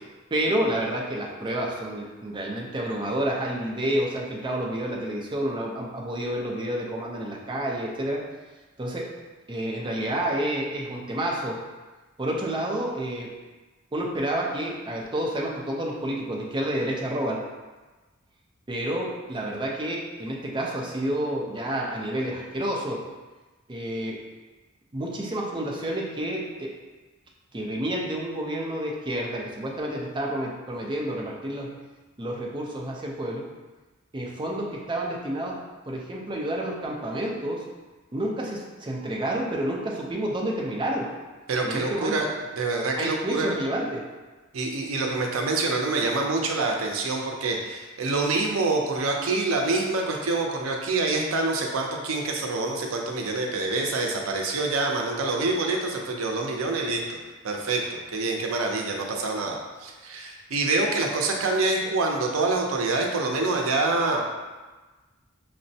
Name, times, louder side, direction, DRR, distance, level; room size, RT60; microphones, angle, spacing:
voice 1, 0.3-8.2 8.8-9.0 9.5-11.5 12.2-13.3 13.9-17.4 18.7-23.0 23.7-24.2 24.9-26.7 27.5-31.7 32.2-33.4 34.1-35.5 35.8-37.6 38.1-41.1 41.7-42.1 43.0-44.0, right 1 dB, 25° right, -2 dB, 0.5 m, -29 dB
voice 2, 41.5-42.3 42.6-43.6 44.5-57.2 57.4-64.3, right 3 dB, 90° right, 1 dB, 0.5 m, -26 dB
5.8 x 2.1 x 2.7 m, 1.2 s
head